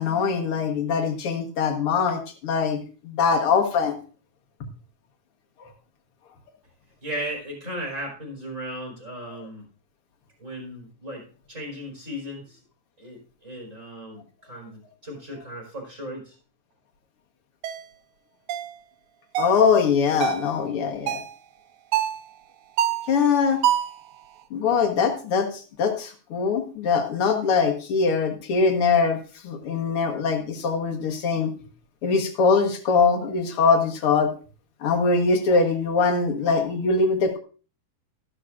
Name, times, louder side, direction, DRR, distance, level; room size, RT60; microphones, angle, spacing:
voice 1, 0.0-2.8 3.0-3.9 19.4-21.2 23.1-23.6 24.5-29.2 29.4-31.5 32.0-34.3 34.8-37.4, left 5 dB, 55° left, 3 dB, 2.0 m, -22 dB
voice 2, 7.0-9.6 10.4-12.6 13.0-16.3, equal, 25° right, 0 dB, 4.6 m, -36 dB
sound 1, 17.6-17.8 18.5-18.7 19.3-19.6 20.2-20.5 21.1-21.4 21.9-22.2 22.8-23.1 23.6-24.0, right 11 dB, 80° right, 1.5 m, -25 dB
13.0 x 12.0 x 2.5 m, 0.37 s
omnidirectional pair, 3.5 m